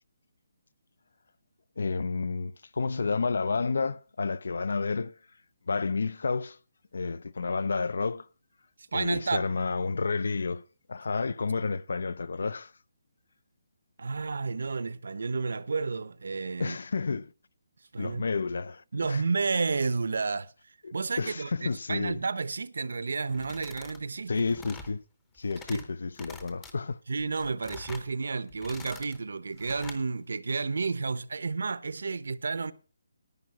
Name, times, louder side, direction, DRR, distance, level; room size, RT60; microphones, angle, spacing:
voice 1, 1.8-5.2 5.7-6.6 6.9-8.3 8.9-10.6 10.9-12.7 16.6-17.3 18.0-19.2 20.8-22.2 24.3-25.0 25.4-27.0, left 4 dB, 60° left, 0.5 m, -30 dB
voice 2, 8.9-9.5 14.0-16.8 17.9-18.2 18.9-20.5 20.9-24.4 25.7-25.8 27.1-32.7, right 4 dB, 60° right, 0.8 m, -31 dB
sound 1, 23.3-24.0 24.3-24.9 25.4-25.9 26.1-26.7 27.2-28.1 28.5-29.2 29.6-30.0, left 4 dB, 10° left, 0.8 m, -46 dB
11.0 x 9.1 x 5.8 m
hypercardioid pair, 180°, 0 cm